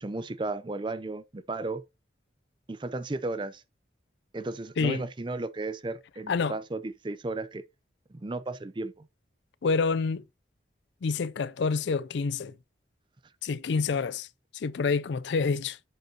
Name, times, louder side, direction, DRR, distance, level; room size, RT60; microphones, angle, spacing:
voice 1, 0.0-1.8 2.7-3.6 4.3-7.6 8.1-9.1, right 2 dB, 25° right, 0.4 m, -34 dB
voice 2, 9.6-10.2 11.0-12.5 13.4-14.3 14.5-15.8, left 4 dB, 70° left, 0.4 m, -27 dB
8.0 x 6.8 x 2.8 m
head